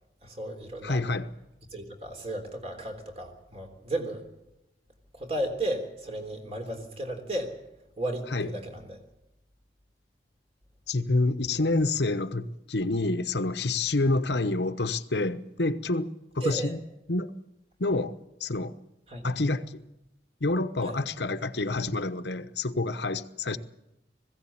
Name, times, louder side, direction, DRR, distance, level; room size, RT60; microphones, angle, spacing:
voice 1, 0.2-1.1 1.7-4.3 5.1-7.5 8.0-9.0 16.4-16.8 19.1-19.3 20.8-21.0, right 1 dB, 35° right, 4 dB, 3.5 m, -34 dB
voice 2, 0.8-1.3 8.3-8.5 10.9-16.1 16.3-16.8 17.1-17.3 17.8-18.1 18.4-18.7 19.2-19.8 20.4-23.6, left 2 dB, 75° left, 10 dB, 1.0 m, -28 dB
20.0 x 16.5 x 8.6 m, 0.90 s
head